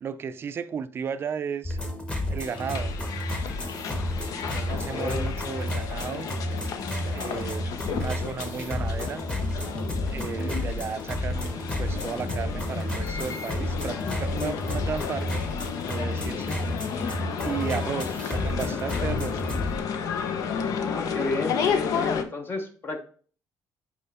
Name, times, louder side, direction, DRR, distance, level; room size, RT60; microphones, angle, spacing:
voice 1, 0.0-1.8 2.3-3.0 4.5-6.3 7.1-9.2 10.0-15.5 15.9-17.1 17.4-19.5, right 7 dB, 40° right, 0.4 m, -34 dB
sound 1, 1.6-19.8, left 1 dB, 15° left, 1.2 m, -31 dB
sound 2, 2.4-22.2, left 7 dB, 65° left, 0.7 m, -32 dB
voice 2, 4.9-5.2 20.8-23.0, left 3 dB, 35° left, 0.9 m, -32 dB
5.3 x 4.9 x 4.2 m
cardioid pair, 115°, 6 cm